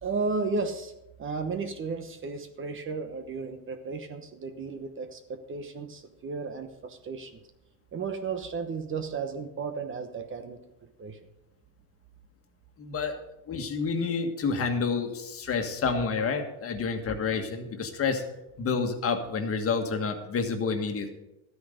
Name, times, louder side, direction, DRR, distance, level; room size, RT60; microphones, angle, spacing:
voice 1, 0.0-0.9 1.2-7.4 7.9-11.2, right 4 dB, 30° right, 7 dB, 1.1 m, -34 dB
voice 2, 12.8-13.2 13.5-18.2 18.6-21.1, left 5 dB, 35° left, 5 dB, 1.7 m, -29 dB
13.5 x 9.6 x 5.1 m, 0.89 s
cardioid pair, 125°, 40 cm